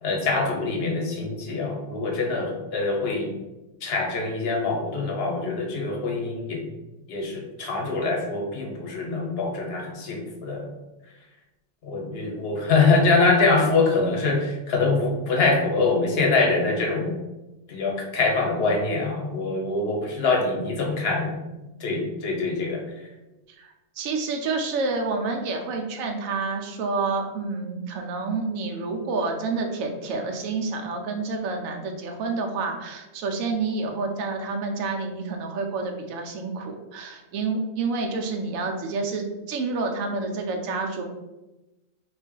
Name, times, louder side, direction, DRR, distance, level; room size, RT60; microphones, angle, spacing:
voice 1, 0.0-3.3 3.8-6.6 7.1-10.7 11.8-17.2 17.7-21.3 21.8-22.8, left 3 dB, 55° left, 0 dB, 0.9 m, -24 dB
voice 2, 23.6-41.0, right 3 dB, 80° right, 3 dB, 1.0 m, -29 dB
3.2 x 2.5 x 3.7 m, 1.0 s
omnidirectional pair, 1.4 m